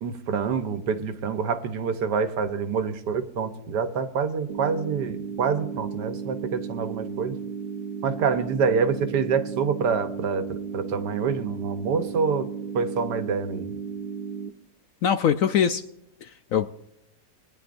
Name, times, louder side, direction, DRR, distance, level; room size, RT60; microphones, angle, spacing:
voice 1, 0.0-7.4 8.0-12.5 12.7-13.8, right 6 dB, 80° right, 9 dB, 1.6 m, -26 dB
sound 1, 4.5-14.5, right 6 dB, 50° right, 0.7 m, -34 dB
voice 2, 15.0-15.8 16.2-16.7, left 8 dB, 70° left, 10 dB, 0.8 m, -22 dB
21.5 x 10.0 x 2.6 m, 0.85 s
omnidirectional pair, 1.8 m